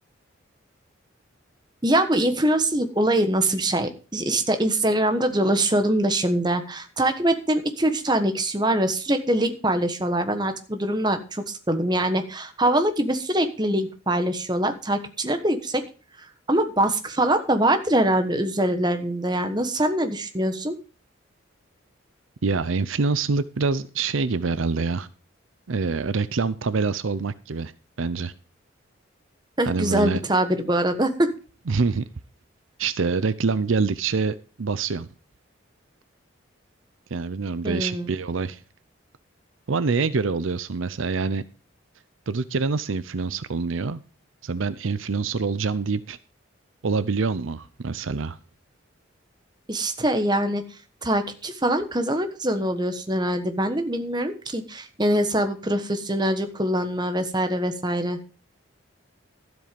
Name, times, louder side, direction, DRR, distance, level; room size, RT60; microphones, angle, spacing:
voice 1, 1.8-15.8 16.5-20.7 29.6-31.3 37.6-38.1 49.7-50.6 51.0-58.2, right 1 dB, 20° right, 7 dB, 1.2 m, -23 dB
voice 2, 22.4-25.1 25.7-27.7 28.0-28.3 29.6-30.2 31.7-32.0 32.8-35.1 37.1-38.6 39.7-41.5 42.3-44.0 44.4-46.2 46.8-48.4, right 4 dB, 75° right, 15 dB, 0.6 m, -25 dB
12.5 x 7.9 x 5.2 m, 0.36 s
head